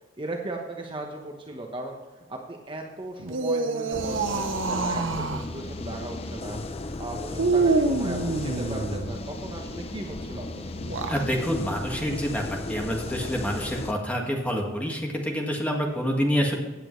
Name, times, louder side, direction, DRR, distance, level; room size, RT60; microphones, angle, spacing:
voice 1, 0.2-6.6 7.0-10.6, right 2 dB, 25° right, 1 dB, 1.1 m, -37 dB
sound 1, 3.2-5.5 7.4-9.2 10.8-11.3, right 3 dB, 75° right, 0.8 m, -26 dB
street sweeper pad loop, 3.9-13.9, left 2 dB, 30° left, 0.6 m, -35 dB
voice 2, 11.1-12.4 12.7-16.6, equal, 5° left, 0 dB, 1.8 m, -27 dB
16.0 x 8.6 x 3.2 m, 1.2 s
head